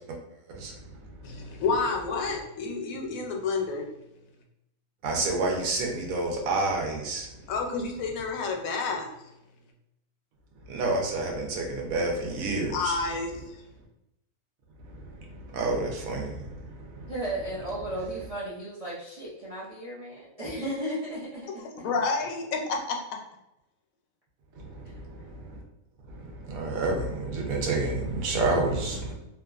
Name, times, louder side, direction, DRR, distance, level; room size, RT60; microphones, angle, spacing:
voice 1, 0.5-0.9 5.0-7.3 10.7-13.0 14.8-17.1 24.6-25.6 26.1-29.1, right 2 dB, 85° right, 1 dB, 1.1 m, -29 dB
voice 2, 1.2-3.9 7.5-9.1 12.7-13.6 21.8-23.0, left 4 dB, 85° left, 2 dB, 1.0 m, -29 dB
voice 3, 17.1-21.9 24.8-25.0, right 1 dB, 65° right, -8 dB, 0.3 m, -35 dB
2.7 x 2.3 x 2.3 m, 0.89 s
omnidirectional pair, 1.4 m